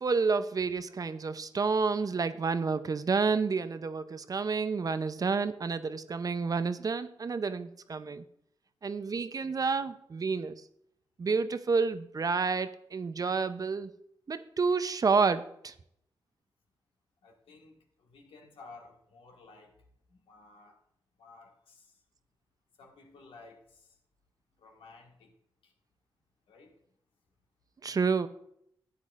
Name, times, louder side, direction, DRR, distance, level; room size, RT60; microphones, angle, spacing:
voice 1, 0.0-8.2 8.8-10.6 11.2-13.9 14.3-15.7 27.8-28.3, right 4 dB, 40° right, 0.6 m, -29 dB
voice 2, 17.2-17.7 18.0-19.7 20.3-20.8 21.2-21.8 22.8-23.6 24.6-25.3 26.5-26.7, left 3 dB, 85° left, 1.6 m, -54 dB
12.5 x 8.7 x 2.5 m
cardioid pair, 65°, 9 cm